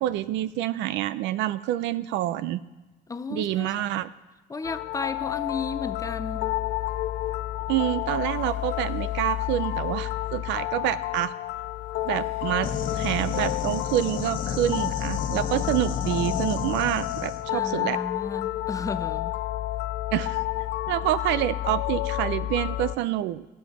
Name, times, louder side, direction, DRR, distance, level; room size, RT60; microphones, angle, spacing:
voice 1, 0.0-2.6 3.3-4.1 7.7-11.3 12.0-18.0 20.1-20.4 20.9-23.4, right 13 dB, 75° right, 15 dB, 0.6 m, -27 dB
voice 2, 3.1-3.7 4.5-6.6 17.5-19.3, left 4 dB, 20° left, 12 dB, 0.6 m, -33 dB
sound 1, 4.6-23.0, left 15 dB, 70° left, 0.4 m, -30 dB
sound 2, 12.6-17.4, left 6 dB, 50° left, 1.2 m, -33 dB
15.0 x 8.1 x 5.3 m, 1.1 s
cardioid pair, 115°, 19 cm